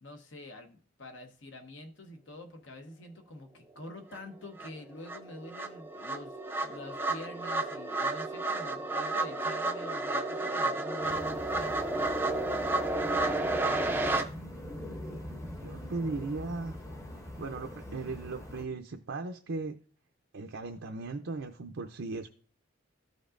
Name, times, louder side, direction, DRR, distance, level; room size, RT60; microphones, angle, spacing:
voice 1, 0.0-11.9, left 1 dB, 65° left, 5 dB, 1.0 m, -46 dB
sound 1, 4.1-4.2 4.6-14.2, right 2 dB, 10° right, 0.5 m, -31 dB
sound 2, 11.0-18.6, left 1 dB, 15° left, 0.8 m, -42 dB
voice 2, 15.6-16.8 17.4-19.7 20.3-22.3, right 3 dB, 65° right, 3 dB, 0.5 m, -37 dB
13.5 x 5.2 x 2.5 m, 0.42 s
head